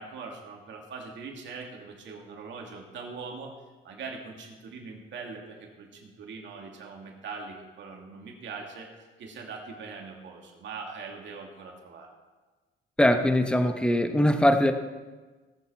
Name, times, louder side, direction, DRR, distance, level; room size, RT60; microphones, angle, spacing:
voice 1, 0.0-3.5 3.8-8.9 9.2-12.1, right 4 dB, 70° right, 0 dB, 2.5 m, -41 dB
voice 2, 13.0-14.7, left 1 dB, 5° left, 7 dB, 1.0 m, -21 dB
18.0 x 6.9 x 4.6 m, 1.3 s
cardioid pair, 90°, 20 cm